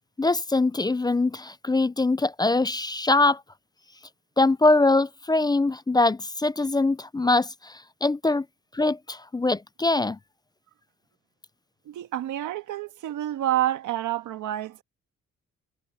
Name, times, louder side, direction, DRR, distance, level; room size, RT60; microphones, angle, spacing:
voice 1, 0.2-3.4 4.4-8.4 8.7-10.2, left 2 dB, 15° left, 0.5 m, -23 dB
voice 2, 11.8-14.8, right 12 dB, 80° right, 1.7 m, -28 dB
cardioid pair, 90°, 30 cm